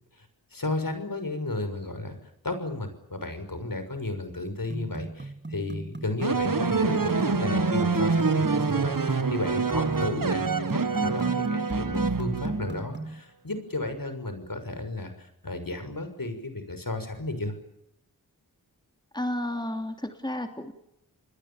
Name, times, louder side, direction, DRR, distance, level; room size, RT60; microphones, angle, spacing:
voice 1, 0.5-2.2 2.4-17.6, left 2 dB, 60° left, 9 dB, 6.3 m, -33 dB
sound 1, 4.7-13.2, right 2 dB, 30° right, 1.5 m, -34 dB
sound 2, 6.2-12.9, right 4 dB, 60° right, 1.6 m, -26 dB
voice 2, 19.1-20.7, left 1 dB, 10° left, 5 dB, 2.9 m, -32 dB
29.0 x 21.5 x 7.2 m, 0.80 s
wide cardioid pair, 45°, 38 cm